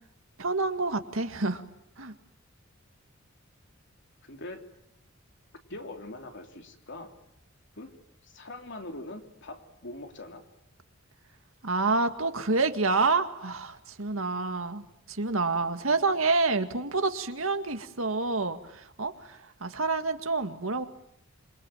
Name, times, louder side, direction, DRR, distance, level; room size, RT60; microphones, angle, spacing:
voice 1, 0.4-1.6 2.0-2.1 11.6-20.8, right 3 dB, 75° right, 7 dB, 2.1 m, -28 dB
voice 2, 4.2-4.6 5.7-7.1 7.8-7.9 8.2-10.5, left 2 dB, 60° left, 4 dB, 3.5 m, -42 dB
28.0 x 23.0 x 9.0 m, 0.78 s
head